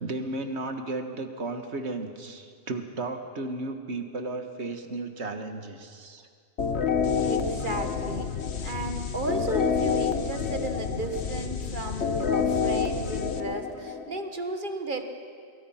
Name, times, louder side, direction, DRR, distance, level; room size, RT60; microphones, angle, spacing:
voice 1, 0.0-6.3, right 2 dB, 80° right, 7 dB, 1.8 m, -34 dB
sound 1, 6.6-14.2, left 6 dB, 75° left, 1.4 m, -28 dB
voice 2, 7.2-15.0, right 2 dB, 50° right, 6 dB, 1.6 m, -34 dB
27.0 x 22.5 x 5.8 m, 2.1 s
omnidirectional pair, 1.1 m